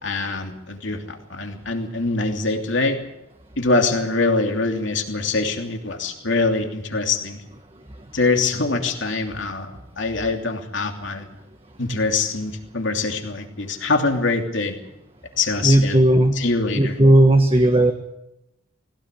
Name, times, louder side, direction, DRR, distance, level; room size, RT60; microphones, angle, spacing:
voice 1, 0.0-3.0 3.6-7.4 8.1-11.3 11.8-14.8 15.4-16.0 16.3-17.0, left 3 dB, 60° left, 3 dB, 3.0 m, -24 dB
voice 2, 15.6-16.3 16.8-17.9, right 1 dB, 25° right, 4 dB, 1.5 m, -15 dB
20.5 x 17.5 x 8.4 m, 0.88 s
head